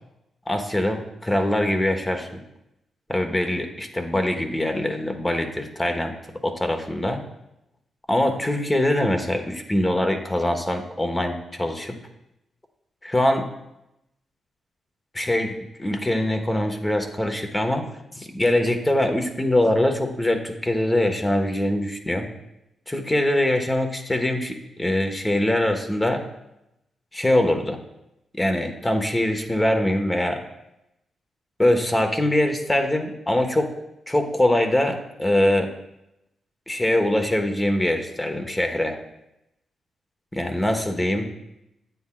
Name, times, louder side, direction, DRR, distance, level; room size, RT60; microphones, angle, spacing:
voice 1, 0.5-2.4 3.1-6.1 6.4-7.2 8.1-12.0 13.0-13.5 15.1-15.5 15.8-17.9 18.2-22.3 22.9-26.2 27.1-27.8 28.4-30.4 31.6-33.7 34.1-35.7 36.7-39.0 40.3-41.3, left 1 dB, 20° left, 5 dB, 1.2 m, -23 dB
9.3 x 8.0 x 2.3 m, 0.86 s
supercardioid pair, 45°, 0 cm